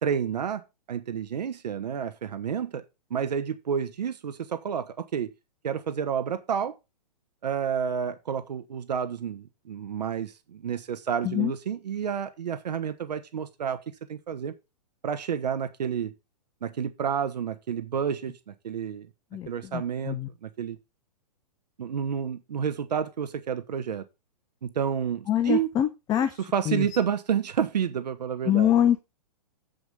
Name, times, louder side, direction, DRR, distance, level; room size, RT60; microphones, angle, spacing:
voice 1, 0.0-2.8 3.1-5.3 5.6-6.8 7.4-13.8 14.1-14.5 15.0-16.1 16.6-19.1 19.5-20.8 21.8-24.0 24.6-25.7 26.5-28.7, right 7 dB, 80° right, 1.2 m, -30 dB
voice 2, 19.3-20.3 25.3-26.4 26.7-26.9 28.4-29.0, left 11 dB, 20° left, 0.7 m, -24 dB
8.1 x 5.1 x 5.3 m
hypercardioid pair, 145°, 21 cm